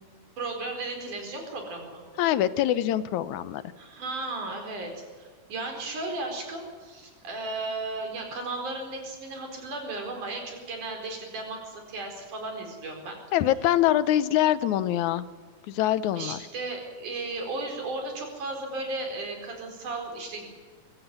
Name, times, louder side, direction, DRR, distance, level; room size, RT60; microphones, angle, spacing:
voice 1, 0.4-2.0 3.8-13.2 16.1-20.5, right 2 dB, 90° right, 3 dB, 6.0 m, -35 dB
voice 2, 2.2-3.6 13.3-15.3 15.7-16.4, left 12 dB, 80° left, 15 dB, 2.2 m, -24 dB
22.5 x 15.5 x 9.3 m, 1.5 s
omnidirectional pair, 3.5 m